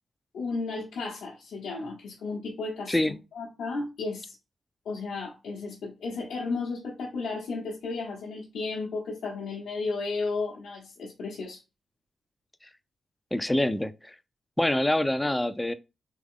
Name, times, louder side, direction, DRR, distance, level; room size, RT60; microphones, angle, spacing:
voice 1, 0.3-2.9 3.3-4.4 4.8-11.6, left 3 dB, 85° left, 0.9 m, -33 dB
voice 2, 13.3-14.1 14.6-15.7, left 1 dB, 10° left, 0.5 m, -25 dB
3.5 x 3.0 x 3.6 m
cardioid pair, 60°, 0 cm